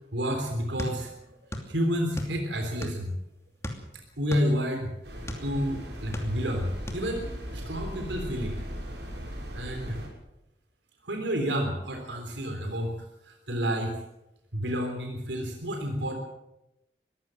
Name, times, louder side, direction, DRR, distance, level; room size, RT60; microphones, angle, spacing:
voice 1, 0.1-1.1 1.7-3.1 4.2-4.9 5.4-8.5 9.5-10.0 11.0-13.0 13.2-14.0 14.5-16.2, equal, 90° right, 3 dB, 3.5 m, -30 dB
sound 1, 0.8-1.7 2.0-3.1 3.6-5.5 5.9-6.6 6.9-7.1, left 1 dB, 15° left, 2.7 m, -36 dB
sound 2, 5.0-10.1, equal, 75° right, 6.3 m, -38 dB
23.0 x 15.0 x 7.7 m, 0.90 s
head